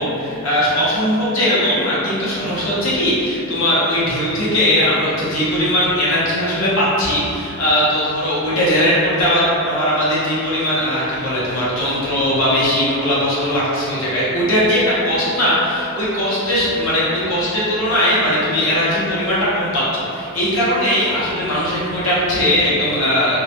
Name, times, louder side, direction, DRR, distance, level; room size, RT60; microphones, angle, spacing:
voice 1, 0.0-23.4, equal, 75° left, -8 dB, 0.7 m, -19 dB
2.3 x 2.0 x 2.7 m, 2.6 s
head